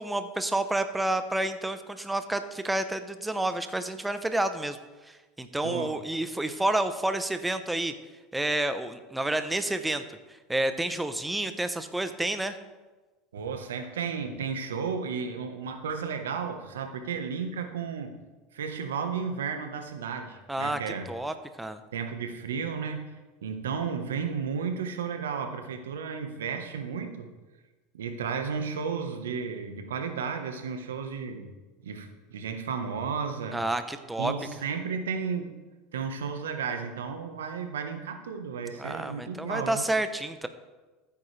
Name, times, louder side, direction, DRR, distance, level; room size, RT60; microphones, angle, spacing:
voice 1, 0.0-4.8 5.1-7.9 8.3-10.0 10.5-12.6 20.5-20.8 21.1-21.8 33.5-34.3 38.8-40.5, right 1 dB, 10° right, 9 dB, 0.9 m, -29 dB
voice 2, 13.3-18.1 18.5-21.1 21.9-23.2 23.4-27.3 27.9-31.5 31.8-33.6 34.2-35.5 35.9-39.8, right 6 dB, 90° right, 6 dB, 1.3 m, -33 dB
15.0 x 8.9 x 3.4 m, 1.2 s
hypercardioid pair, 95°, 0 cm